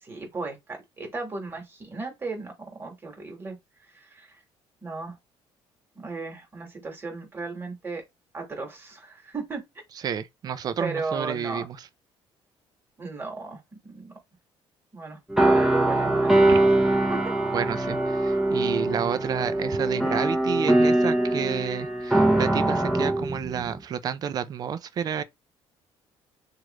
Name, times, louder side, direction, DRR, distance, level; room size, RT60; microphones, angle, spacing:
voice 1, 0.0-2.5 2.8-3.5 3.9-4.3 4.8-5.2 5.9-8.0 8.3-9.6 10.8-11.6 13.0-14.1 14.9-15.2 15.4-16.5 17.1-17.2, right 3 dB, 20° right, 1.4 m, -35 dB
voice 2, 10.0-11.9 16.5-16.6 17.5-25.2, right 8 dB, 40° right, 0.4 m, -30 dB
sound 1, 15.3-23.8, right 1 dB, 5° right, 0.7 m, -22 dB
3.1 x 2.4 x 3.0 m
cardioid pair, 145°, 10 cm